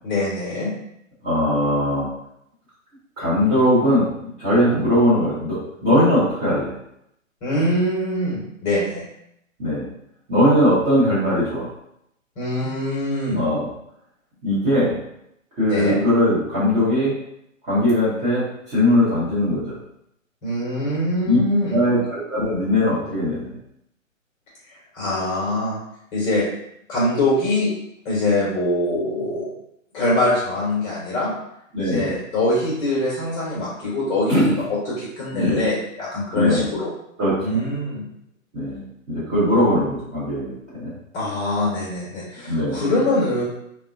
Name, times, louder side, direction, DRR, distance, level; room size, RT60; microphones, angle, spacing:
voice 1, 0.0-0.7 7.4-9.0 12.4-13.5 15.7-16.0 20.4-21.8 24.9-25.8 26.1-26.4 26.9-27.7 28.0-29.5 29.9-31.3 31.8-36.9 37.4-38.1 41.1-43.4, left 1 dB, 20° left, -7 dB, 1.1 m, -23 dB
voice 2, 1.2-2.1 3.2-6.7 9.6-9.9 10.3-11.7 13.3-13.7 14.4-15.0 15.6-17.1 17.6-19.8 21.2-21.4 21.7-23.5 31.7-32.2 34.3-34.5 35.3-35.6 36.3-36.6 37.2-37.6 38.5-40.9 42.4-42.8, left 1 dB, 15° right, -11 dB, 0.9 m, -20 dB
3.5 x 2.2 x 2.5 m, 0.77 s
hypercardioid pair, 140°, 40 cm